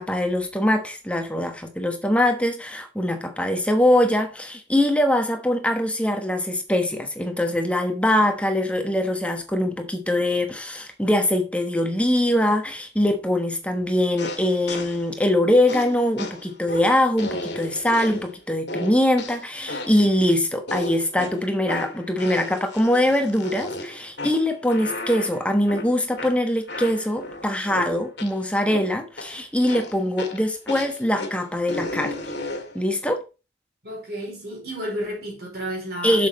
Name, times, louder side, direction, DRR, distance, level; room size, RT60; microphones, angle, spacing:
voice 1, 0.0-32.1 32.7-33.2 36.0-36.3, left 1 dB, 5° left, 1.1 m, -22 dB
sound 1, 14.2-15.1 15.7-18.4 18.7-20.1 20.7-28.4 28.7-29.4 29.7-32.8, left 2 dB, 70° left, 1.8 m, -34 dB
voice 2, 33.8-36.3, equal, 55° right, 4.6 m, -32 dB
7.3 x 7.2 x 4.2 m
head